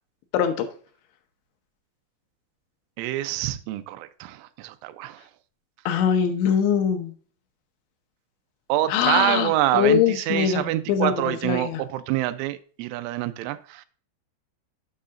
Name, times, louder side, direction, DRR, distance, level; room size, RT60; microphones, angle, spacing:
voice 1, 0.3-0.7 5.9-7.1 8.9-11.8, left 8 dB, 80° left, 3.1 m, -22 dB
voice 2, 3.0-5.2 8.7-13.9, right 14 dB, 85° right, 3.1 m, -26 dB
11.0 x 7.6 x 2.5 m
omnidirectional pair, 5.4 m